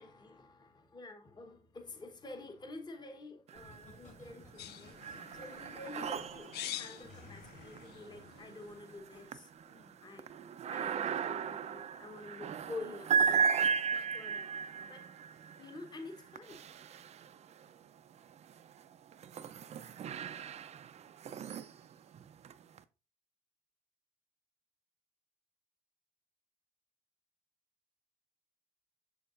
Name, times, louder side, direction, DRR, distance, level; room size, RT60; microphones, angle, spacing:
voice 1, 0.0-5.0 5.3-9.5 10.0-10.3 10.7-13.7 14.1-14.5 14.9-15.0 15.6-16.6, left 2 dB, 25° left, 1.1 m, -48 dB
Laughter, 3.5-9.2 9.7-10.0, left 2 dB, 50° left, 2.3 m, -58 dB
sound 1, 3.5-4.2 4.5-17.7 18.3-22.8, right 6 dB, 40° right, 0.5 m, -36 dB
sound 2, 4.6-9.1, left 12 dB, 75° left, 0.5 m, -47 dB
6.8 x 6.4 x 2.5 m
cardioid pair, 110°, 17 cm